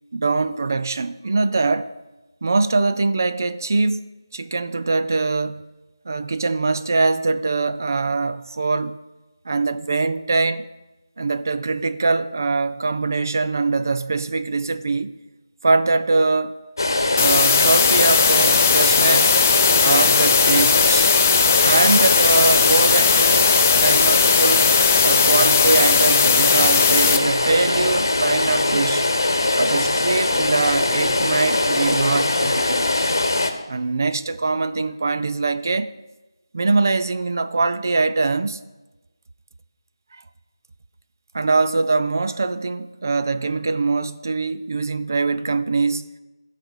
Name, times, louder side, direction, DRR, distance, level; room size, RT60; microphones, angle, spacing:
voice 1, 0.1-1.9 2.4-4.0 4.3-5.6 6.1-9.0 9.5-10.7 11.2-15.1 15.6-16.5 17.2-19.4 19.8-21.1 21.6-23.5 23.8-24.7 25.0-29.1 29.6-32.8 33.7-35.9 36.5-38.6 40.1-40.2 41.3-46.1, right 3 dB, 45° right, 0.4 m, -22 dB
sound 1, 16.8-33.5, left 2 dB, 60° left, 1.0 m, -21 dB
sound 2, 17.2-27.2, left 7 dB, 20° left, 0.3 m, -18 dB
11.5 x 4.1 x 6.2 m
figure-of-eight pair, 165°, 2 cm